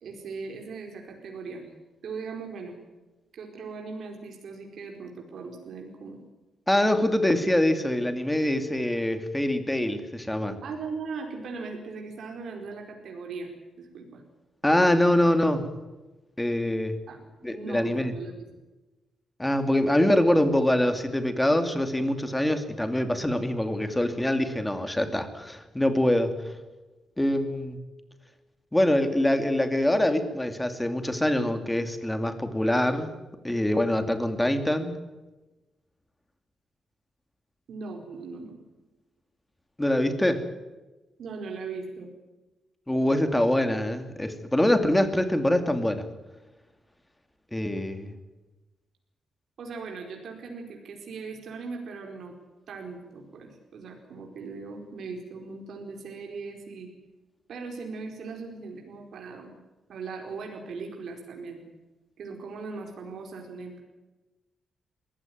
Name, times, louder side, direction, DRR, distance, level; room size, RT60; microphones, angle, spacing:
voice 1, 0.0-1.7 2.0-2.8 3.3-6.2 10.6-13.5 13.8-14.2 17.1-17.2 17.5-18.5 37.7-38.6 41.2-42.1 49.6-52.3 52.7-56.9 57.5-59.5 59.9-61.6 62.2-63.8, right 4 dB, 65° right, 2 dB, 4.7 m, -39 dB
voice 2, 6.7-10.6 14.6-15.7 16.4-17.0 17.4-18.1 19.4-26.3 27.2-27.8 28.7-33.1 33.4-35.0 39.8-40.4 42.9-46.0 47.5-48.1, left 1 dB, 10° left, 8 dB, 2.6 m, -24 dB
21.5 x 16.0 x 9.5 m, 1.1 s
cardioid pair, 115°, 0 cm